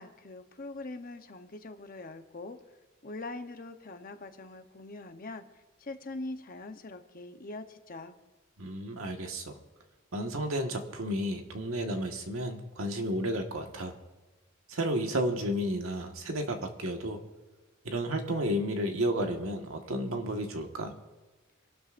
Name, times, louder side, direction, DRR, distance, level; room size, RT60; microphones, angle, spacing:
voice 1, 0.0-2.6 3.0-5.4 5.8-8.1, left 2 dB, 45° left, 7 dB, 0.9 m, -42 dB
voice 2, 8.6-9.6 10.1-13.9 14.7-17.2 17.8-20.9, equal, 85° right, 3 dB, 1.6 m, -32 dB
26.0 x 12.0 x 2.6 m, 1.2 s
head